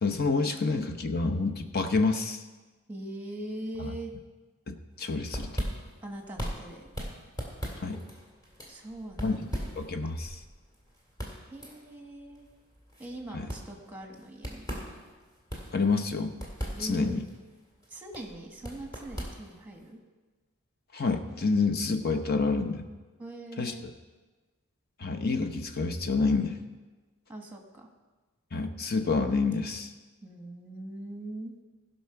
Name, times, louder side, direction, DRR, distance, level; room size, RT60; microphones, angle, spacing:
voice 1, 0.0-2.4 3.8-3.9 4.7-5.6 7.8-8.0 9.2-9.4 9.8-10.4 13.3-13.5 15.7-16.4 16.8-17.2 20.9-22.8 23.6-23.9 25.0-26.6 28.5-29.9, left 4 dB, 45° left, 6 dB, 0.7 m, -28 dB
voice 2, 2.9-4.1 6.0-6.9 8.7-9.7 11.5-12.5 13.0-14.6 16.7-17.2 17.9-20.0 23.2-23.9 27.3-27.9 30.2-31.5, right 1 dB, 10° right, 2 dB, 1.3 m, -41 dB
sound 1, 5.0-19.9, equal, 15° left, 1.9 m, -40 dB
16.5 x 5.6 x 5.8 m, 1.3 s
head